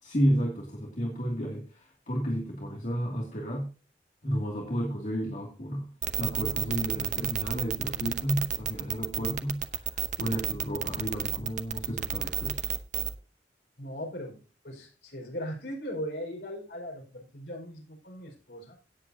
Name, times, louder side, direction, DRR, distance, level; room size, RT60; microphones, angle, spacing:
voice 1, 0.0-3.7 4.2-5.9 6.2-12.7, equal, 45° left, -1 dB, 2.6 m, -32 dB
sound 1, 6.0-13.1, right 9 dB, 45° right, 1.0 m, -30 dB
voice 2, 13.8-18.8, equal, 70° left, 0 dB, 5.1 m, -39 dB
17.5 x 8.3 x 2.8 m, 0.33 s
head